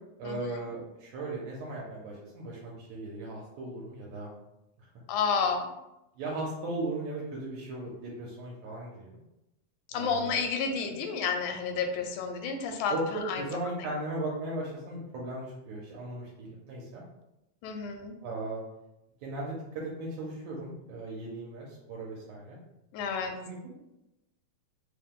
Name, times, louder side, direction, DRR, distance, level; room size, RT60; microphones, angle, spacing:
voice 1, 0.2-4.3 4.8-4.9 6.2-9.2 9.9-10.4 12.9-17.0 18.2-18.6 19.2-22.6 23.4-23.8, right 2 dB, 75° right, -3 dB, 1.9 m, -37 dB
voice 2, 5.1-5.7 9.9-13.4 17.6-18.1 22.9-23.3, left 5 dB, 85° left, 5 dB, 2.1 m, -30 dB
4.8 x 2.2 x 3.6 m, 0.91 s
omnidirectional pair, 3.4 m